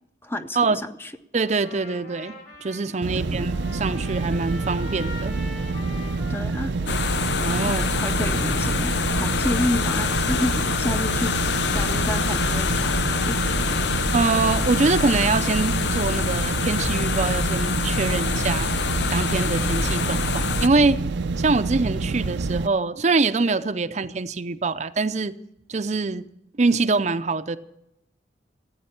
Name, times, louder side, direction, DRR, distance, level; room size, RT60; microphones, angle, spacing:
voice 1, 0.2-1.1 3.3-3.4 6.3-6.7 7.7-11.5 11.7-13.4, left 1 dB, 15° left, 0.7 m, -30 dB
voice 2, 1.3-2.3 2.6-5.4 7.4-7.8 14.1-18.7 19.1-21.0 21.4-25.3 25.7-26.3 26.6-27.6, right 3 dB, 40° right, 0.5 m, -24 dB
Trumpet, 1.4-9.5, left 2 dB, 50° left, 3.0 m, -43 dB
sound 1, 3.0-22.7, right 3 dB, 85° right, 0.5 m, -27 dB
sound 2, 6.9-20.7, left 5 dB, 70° left, 0.6 m, -26 dB
15.5 x 8.7 x 8.8 m
head